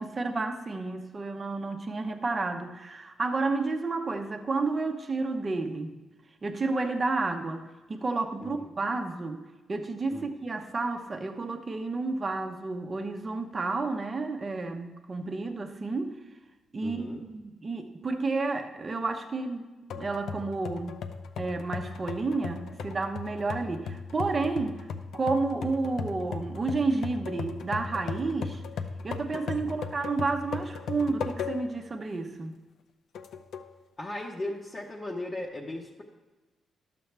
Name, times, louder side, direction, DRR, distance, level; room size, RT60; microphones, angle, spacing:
voice 1, 0.0-6.0 6.4-7.6 7.9-9.4 9.7-16.2 16.7-19.7 19.9-21.0 21.4-24.8 25.1-28.6 29.0-32.5, right 3 dB, 30° right, 5 dB, 0.8 m, -31 dB
voice 2, 8.4-8.7 10.1-10.3 16.8-17.2 29.6-29.8 34.0-36.0, left 1 dB, 30° left, -3 dB, 0.9 m, -37 dB
sound 1, 19.9-31.8 32.3-32.4 33.1-33.7, left 5 dB, 80° left, 0.6 m, -37 dB
11.5 x 6.9 x 3.3 m, 1.2 s
cardioid pair, 110°, 0 cm